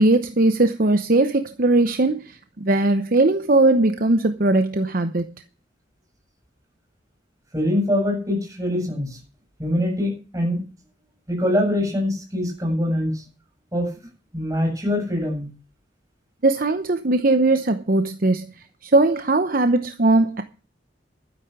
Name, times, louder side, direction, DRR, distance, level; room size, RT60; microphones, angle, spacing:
voice 1, 0.0-2.2 2.6-5.3 16.4-18.5 18.8-20.4, right 2 dB, 50° right, 0.9 m, -19 dB
voice 2, 7.5-9.2 9.6-10.6 11.3-13.2 13.7-13.9 14.3-15.5, left 1 dB, 15° right, 7.6 m, -23 dB
12.5 x 10.0 x 6.1 m
head